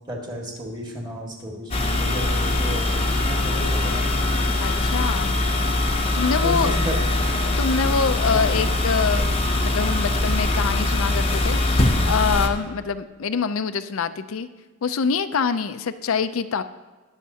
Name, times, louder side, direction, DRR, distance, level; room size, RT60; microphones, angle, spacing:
voice 1, 0.1-4.1 6.4-7.0 8.3-8.5, equal, 20° right, -1 dB, 1.8 m, -33 dB
sound 1, 1.7-12.5, left 2 dB, 25° left, 0.8 m, -22 dB
voice 2, 4.6-5.4 6.1-6.8 7.5-14.5 14.8-16.6, left 5 dB, 70° left, 12 dB, 0.5 m, -25 dB
20.5 x 7.3 x 2.8 m, 1.3 s
head